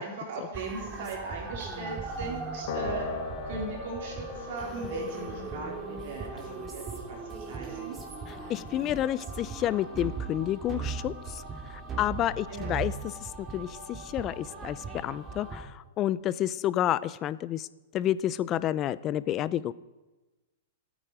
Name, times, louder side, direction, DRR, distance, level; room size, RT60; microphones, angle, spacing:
voice 1, 0.0-3.1 3.4-8.0 8.4-8.5 12.5-12.7, right 3 dB, 65° right, -1 dB, 4.1 m, -39 dB
sound 1, 0.5-15.6, right 4 dB, 20° right, 3.1 m, -38 dB
Piano, 2.7-9.2, left 10 dB, 60° left, 1.1 m, -42 dB
voice 2, 8.5-11.4 11.7-12.9 13.2-17.7 17.9-19.7, left 12 dB, 30° left, 17 dB, 0.6 m, -30 dB
27.0 x 9.1 x 5.0 m, 1.1 s
hypercardioid pair, 135°, 0 cm